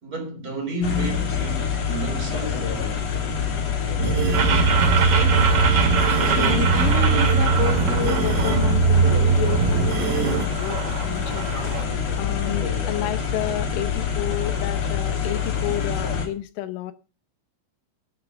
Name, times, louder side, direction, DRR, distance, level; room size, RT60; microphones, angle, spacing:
voice 1, 0.0-2.7, right 1 dB, 20° right, 3.2 m, -30 dB
sound 1, 0.8-16.3, left 7 dB, 40° left, 2.7 m, -26 dB
sound 2, 4.0-10.5, right 5 dB, 80° right, 3.9 m, -21 dB
sound 3, 4.3-11.8, right 6 dB, 40° right, 2.5 m, -27 dB
voice 2, 6.4-11.6 12.2-16.9, left 14 dB, 75° left, 3.2 m, -30 dB
11.5 x 8.4 x 7.9 m
omnidirectional pair, 5.9 m